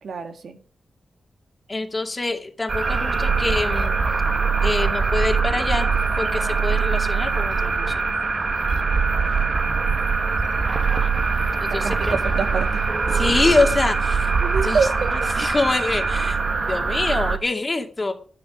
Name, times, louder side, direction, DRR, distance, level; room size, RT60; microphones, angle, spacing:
voice 1, 0.0-0.6 11.8-12.8 14.4-15.5, right 5 dB, 75° right, 6 dB, 2.1 m, -26 dB
voice 2, 1.7-4.0 4.6-8.1 11.6-12.1 13.1-14.3 14.6-14.8 15.1-16.4 16.7-18.1, left 3 dB, 25° left, 4 dB, 2.2 m, -25 dB
sound 1, 2.7-17.4, right 5 dB, 35° right, 1.6 m, -22 dB
13.0 x 10.0 x 6.3 m, 0.42 s
wide cardioid pair, 170°, 0 cm